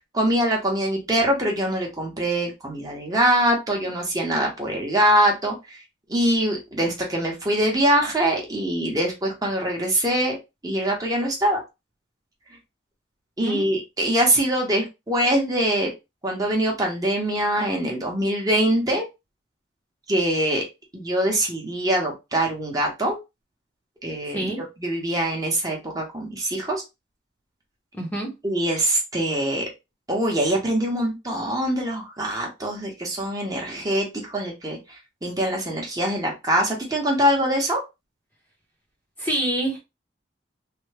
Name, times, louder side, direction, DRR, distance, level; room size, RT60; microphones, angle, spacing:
voice 1, 0.1-5.8 6.1-10.4 10.6-11.6 13.4-15.9 16.2-19.0 20.1-20.6 20.9-23.2 24.0-24.5 24.8-26.8 28.4-29.7 30.1-37.8, right 1 dB, 20° right, 0.9 m, -23 dB
voice 2, 27.9-28.3 39.2-39.8, right 1 dB, 10° left, 0.8 m, -26 dB
3.3 x 2.2 x 3.3 m
head